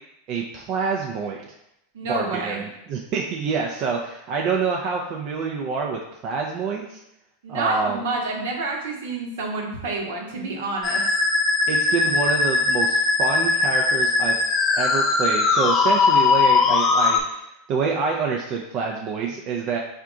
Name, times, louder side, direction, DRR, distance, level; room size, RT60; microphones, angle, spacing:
voice 1, 0.3-1.4 2.1-7.0 7.5-8.0 11.7-14.4 14.7-17.4 17.7-19.8, right 5 dB, 50° right, 0 dB, 0.5 m, -27 dB
voice 2, 1.9-2.6 7.4-11.1, right 3 dB, 70° right, 1 dB, 0.9 m, -28 dB
Musical instrument, 10.8-17.2, left 4 dB, 35° left, 0.6 m, -20 dB
4.3 x 2.5 x 3.7 m, 0.83 s
hypercardioid pair, 100°, 0 cm